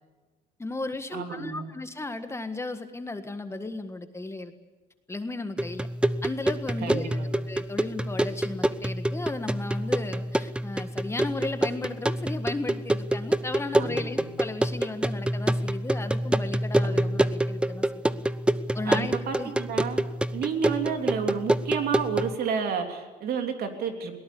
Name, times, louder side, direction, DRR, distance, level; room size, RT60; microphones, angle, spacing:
voice 1, 0.6-4.5 5.1-5.9 6.2-18.2 18.7-19.5, left 2 dB, 15° left, 8 dB, 1.6 m, -35 dB
voice 2, 1.1-1.7 6.8-7.4 13.8-14.3 16.8-17.1 18.9-20.0 20.3-24.1, right 6 dB, 65° right, 5 dB, 3.3 m, -31 dB
sound 1, 5.6-22.3, right 1 dB, 5° right, 0.7 m, -27 dB
21.5 x 18.5 x 8.5 m, 1.2 s
cardioid pair, 110°, 17 cm